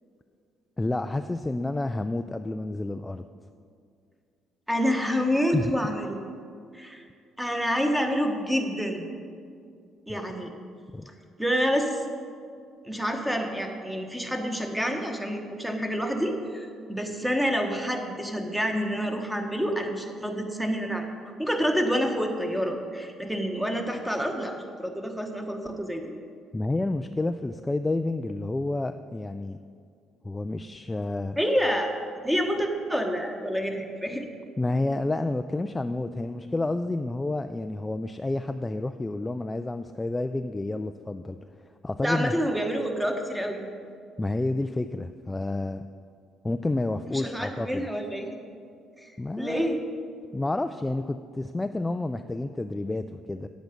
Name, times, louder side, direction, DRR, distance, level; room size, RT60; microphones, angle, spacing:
voice 1, 0.8-3.2 5.5-5.7 10.9-11.1 26.5-29.6 30.2-31.4 34.6-41.4 41.8-42.3 44.2-45.8 46.4-47.9 49.2-49.7 50.3-53.5, left 2 dB, 15° left, 8 dB, 0.3 m, -29 dB
voice 2, 4.7-6.2 6.7-7.0 7.4-9.1 10.1-10.5 11.4-12.0 12.8-21.1 21.4-26.1 31.4-31.9 32.2-34.3 42.0-43.7 47.1-48.4 49.0-49.1 49.4-49.8, equal, 5° right, 3 dB, 1.2 m, -28 dB
9.2 x 8.3 x 5.2 m, 2.3 s
cardioid pair, 90°, 0 cm